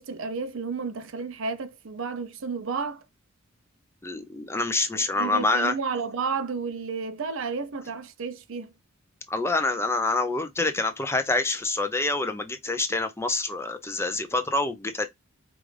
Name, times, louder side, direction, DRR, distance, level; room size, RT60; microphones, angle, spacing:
voice 1, 0.0-3.0 4.9-8.7, right 5 dB, 65° right, 0.6 m, -32 dB
voice 2, 4.0-5.8 9.3-15.1, left 2 dB, 10° left, 0.5 m, -26 dB
4.9 x 2.5 x 3.2 m
head